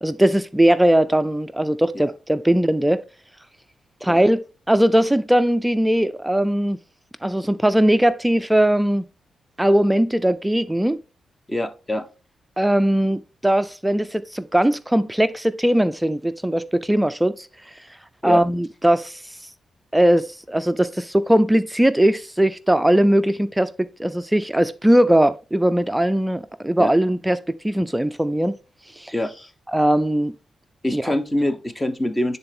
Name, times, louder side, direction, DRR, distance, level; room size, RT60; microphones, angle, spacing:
voice 1, 0.0-3.0 4.0-6.8 7.2-9.0 9.6-11.0 12.6-17.5 18.2-19.2 19.9-27.4 27.6-28.6 29.0-29.1 29.7-30.3 30.9-31.0, right 1 dB, 5° right, 0.4 m, -19 dB
voice 2, 11.5-12.0 18.2-18.4 26.8-26.9 29.1-29.5 30.8-32.4, left 1 dB, 15° left, 0.9 m, -24 dB
9.5 x 3.9 x 3.7 m
cardioid pair, 80°, 0 cm